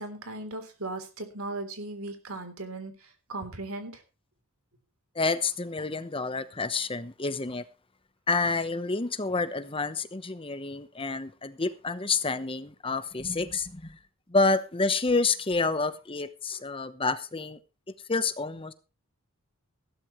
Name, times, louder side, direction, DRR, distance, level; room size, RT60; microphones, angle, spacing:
voice 1, 0.0-2.9 3.3-4.0, right 2 dB, 75° right, 3.5 m, -37 dB
voice 2, 5.1-7.6 8.3-14.0 14.3-17.6 18.1-18.7, left 3 dB, 25° left, 1.0 m, -28 dB
15.5 x 13.0 x 3.2 m
head